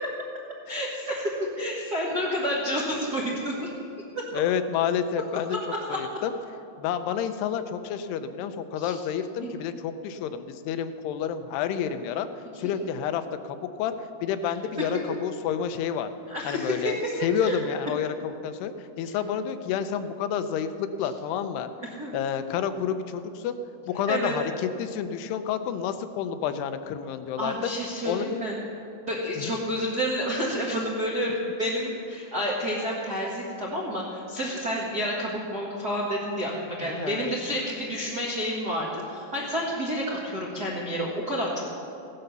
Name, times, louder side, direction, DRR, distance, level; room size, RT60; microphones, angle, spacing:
voice 1, 0.7-3.7 4.1-4.3 5.9-6.0 8.8-8.9 9.4-9.5 14.8-14.9 16.3-16.8 17.4-17.5 19.1-19.2 22.0-22.1 24.1-24.3 27.4-28.6 29.0-41.8, equal, 60° right, -4 dB, 1.0 m, -29 dB
voice 2, 4.3-5.6 5.9-6.3 6.8-12.3 12.6-13.9 14.2-16.1 16.5-18.7 19.0-21.7 22.1-23.6 23.9-27.5 28.0-28.4 29.4-29.5 36.8-37.3, left 8 dB, 85° left, 9 dB, 2.8 m, -29 dB
16.5 x 11.0 x 6.8 m, 2.7 s
omnidirectional pair, 4.6 m